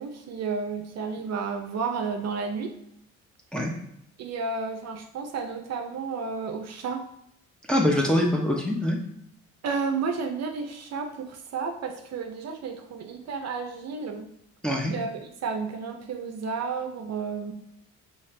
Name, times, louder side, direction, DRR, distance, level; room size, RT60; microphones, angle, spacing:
voice 1, 0.0-2.7 4.2-7.0 9.6-14.3 14.9-17.5, right 5 dB, 60° right, 4 dB, 0.6 m, -32 dB
voice 2, 7.7-9.0 14.6-14.9, left 1 dB, 5° left, 0 dB, 0.9 m, -24 dB
5.6 x 2.8 x 3.3 m, 0.78 s
cardioid pair, 90°, 30 cm